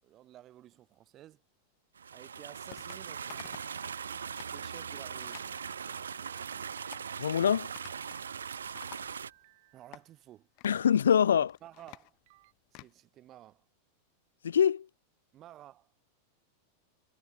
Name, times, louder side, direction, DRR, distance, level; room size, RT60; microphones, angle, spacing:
voice 1, 0.0-1.4 2.1-3.6 4.5-6.7 8.8-9.0 9.7-10.5 11.6-12.2 12.7-13.7 15.3-15.9, right 13 dB, 30° right, 6.2 m, -54 dB
sound 1, 2.0-9.3, right 7 dB, 70° right, 0.6 m, -40 dB
sound 2, 2.7-3.0 3.3-3.8 4.1-4.6 5.2-5.5 6.0-6.4 6.8-7.1 7.8-8.3 8.5-9.5 9.9-10.1 10.6-10.9 11.3-12.9, left 31 dB, 45° left, 2.7 m, -52 dB
sound 3, 2.9-10.3 11.7-11.8 12.3-12.5, right 21 dB, 50° right, 5.4 m, -63 dB
voice 2, 7.2-7.7 10.6-11.5 14.4-14.9, left 8 dB, 65° left, 0.4 m, -24 dB
figure-of-eight pair, 90°, 0 cm